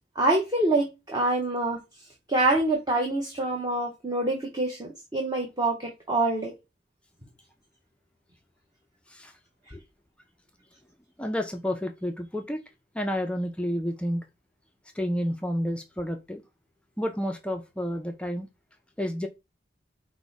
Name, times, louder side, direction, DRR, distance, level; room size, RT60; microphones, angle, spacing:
voice 1, 0.2-1.8 2.3-6.5, right 2 dB, 20° right, 0.7 m, -26 dB
voice 2, 11.2-12.6 12.9-14.2 14.9-16.4 17.0-18.5 19.0-19.3, equal, 5° left, 0.3 m, -30 dB
4.6 x 2.0 x 3.9 m
head